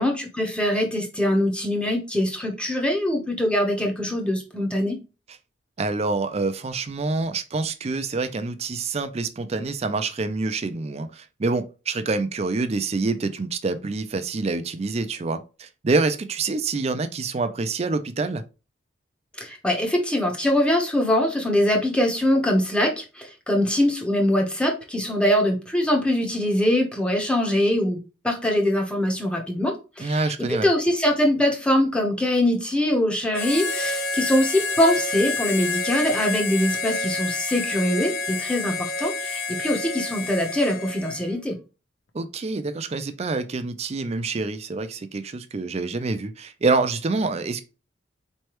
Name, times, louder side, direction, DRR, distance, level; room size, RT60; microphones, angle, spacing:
voice 1, 0.0-5.0 19.4-28.0 28.2-41.6, left 1 dB, 5° left, 0.8 m, -23 dB
voice 2, 5.8-18.4 30.0-30.7 42.1-47.6, right 3 dB, 35° right, 0.4 m, -26 dB
Harmonica, 33.3-41.4, left 3 dB, 85° left, 0.8 m, -29 dB
4.4 x 3.2 x 3.0 m
head